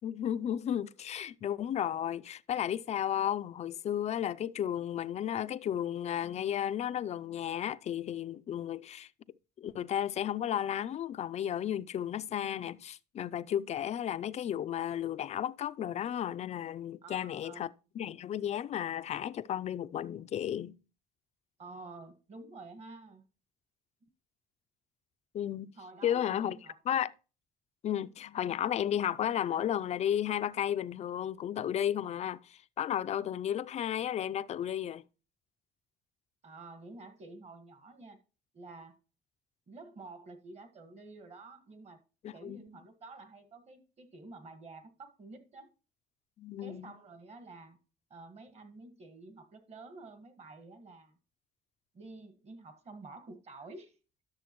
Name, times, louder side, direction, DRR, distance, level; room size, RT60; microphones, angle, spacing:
voice 1, 0.0-9.1 9.6-17.7 17.9-20.8 25.3-25.7 26.0-26.6 26.9-27.1 27.8-35.0 42.2-42.6 46.4-46.9, left 10 dB, 40° left, 0.4 m, -33 dB
voice 2, 17.0-17.7 21.6-23.2 25.8-26.7 36.4-38.2 38.5-39.0 39.7-42.0 42.3-45.7 46.6-47.8 48.1-51.2 51.9-54.0, right 3 dB, 40° right, 1.6 m, -50 dB
11.5 x 6.8 x 3.0 m
cardioid pair, 110°, 17 cm